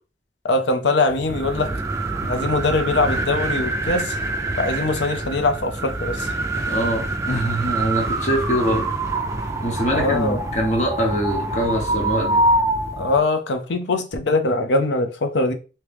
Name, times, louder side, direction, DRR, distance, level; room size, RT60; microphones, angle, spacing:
voice 1, 0.4-1.7 2.2-4.2 4.6-6.3 9.9-10.4 13.0-15.5, left 2 dB, 85° left, 0.6 m, -22 dB
sound 1, 1.1-13.2, right 2 dB, 15° right, 0.4 m, -25 dB
voice 2, 6.7-8.9 9.6-12.4, equal, 40° left, 1.1 m, -23 dB
3.1 x 2.8 x 3.4 m
head